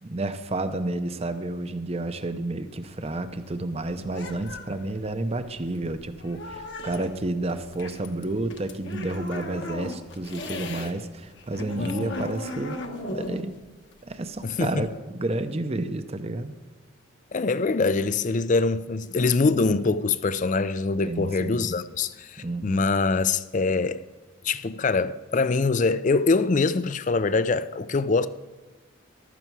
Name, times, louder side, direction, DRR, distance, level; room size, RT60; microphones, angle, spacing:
voice 1, 0.0-12.8 13.1-13.6 14.1-16.5 21.0-21.6 22.4-22.8, right 2 dB, 30° right, 0.7 m, -30 dB
sound 1, 2.8-10.9 11.2-15.0, left 2 dB, 55° left, 1.2 m, -38 dB
voice 2, 11.8-12.3 14.4-14.9 17.3-24.0 24.4-28.3, left 3 dB, 35° left, 0.4 m, -24 dB
14.5 x 12.5 x 4.7 m
head